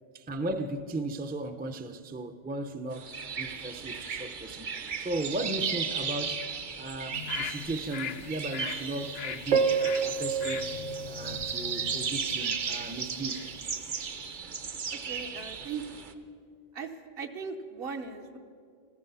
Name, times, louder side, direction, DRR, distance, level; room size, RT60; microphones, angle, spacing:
voice 1, 0.1-4.7 5.0-6.4 6.8-9.7 10.0-10.7 11.0-13.4, right 2 dB, 15° right, 0.4 m, -36 dB
sound 1, 3.0-16.1, right 6 dB, 50° right, 0.9 m, -33 dB
sound 2, 7.1-13.6 13.9-14.0, left 9 dB, 80° left, 0.8 m, -42 dB
voice 2, 15.1-16.0 16.7-16.9 17.2-18.4, right 5 dB, 70° right, 1.2 m, -38 dB
14.0 x 14.0 x 5.5 m
omnidirectional pair, 1.0 m